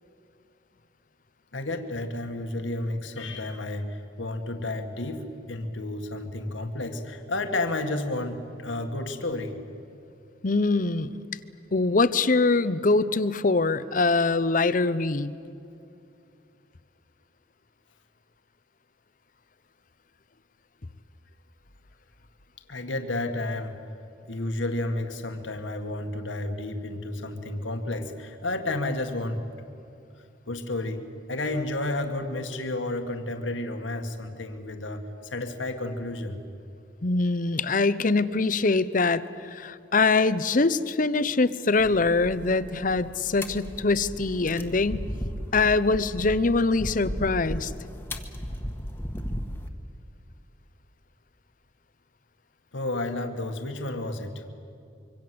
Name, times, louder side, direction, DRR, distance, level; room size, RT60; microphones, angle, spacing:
voice 1, 1.5-9.6 22.7-23.8 24.2-29.4 30.5-31.0 31.3-36.4 52.7-54.4, left 2 dB, 85° left, 6 dB, 2.0 m, -31 dB
voice 2, 10.4-11.2 11.7-15.3 37.0-45.0 45.5-47.7, left 3 dB, 45° left, 15 dB, 0.8 m, -23 dB
sound 1, 41.8-49.7, equal, 10° left, 1.5 m, -36 dB
25.5 x 25.0 x 7.8 m, 2.6 s
head